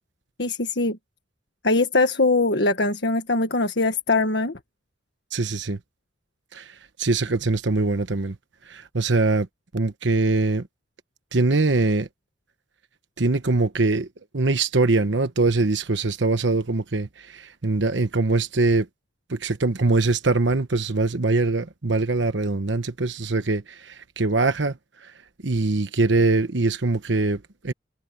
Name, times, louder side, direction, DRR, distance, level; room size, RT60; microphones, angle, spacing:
voice 1, 0.4-1.0 1.6-4.6, left 3 dB, 65° left, 1.6 m, -22 dB
voice 2, 5.3-5.8 6.5-8.4 8.7-9.5 9.7-10.7 11.3-12.1 13.2-14.1 14.3-18.9 19.3-25.1 25.4-27.7, right 3 dB, 75° right, 1.1 m, -23 dB
head